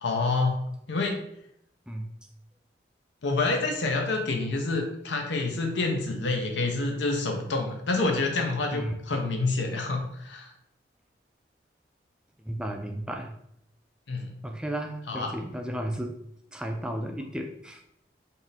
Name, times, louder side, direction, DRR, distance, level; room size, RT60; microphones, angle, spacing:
voice 1, 0.0-0.6 0.9-1.2 3.2-10.5 14.1-14.3 15.1-15.3, left 3 dB, 85° left, 2 dB, 0.6 m, -27 dB
voice 2, 12.5-13.3 14.4-16.2 16.5-17.8, right 1 dB, 5° right, 3 dB, 0.3 m, -33 dB
3.5 x 2.6 x 4.0 m, 0.75 s
head